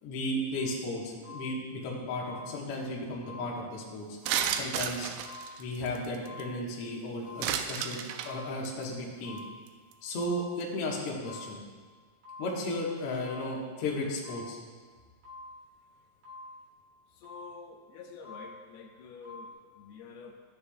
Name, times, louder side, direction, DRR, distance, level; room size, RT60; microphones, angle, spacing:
voice 1, 0.0-4.2 4.5-5.1 5.6-8.0 8.2-9.4 10.0-11.6 12.4-14.6, left 1 dB, 65° left, -3 dB, 1.5 m, -34 dB
sound 1, 0.5-0.8 1.2-1.8 2.2-2.8 3.2-3.8 4.2-4.8 5.2-5.8 6.2-6.8 7.2-7.8 8.2-8.8 9.2-9.8 10.2-10.8 11.2-11.8 12.2-12.8 13.2-13.8 14.2-14.8 15.2-15.8 16.2-16.8 17.2-17.8 18.2-18.8 19.2-19.5, left 2 dB, 45° right, 3.2 m, -48 dB
sound 2, 4.3-6.4 7.4-8.3 8.6-8.8 9.4-9.5 9.7-9.9 10.2-10.3, right 9 dB, 85° right, 2.1 m, -32 dB
voice 2, 17.1-20.4, left 5 dB, 85° left, 3 dB, 2.5 m, -48 dB
13.0 x 6.8 x 2.3 m, 1.5 s
omnidirectional pair, 4.7 m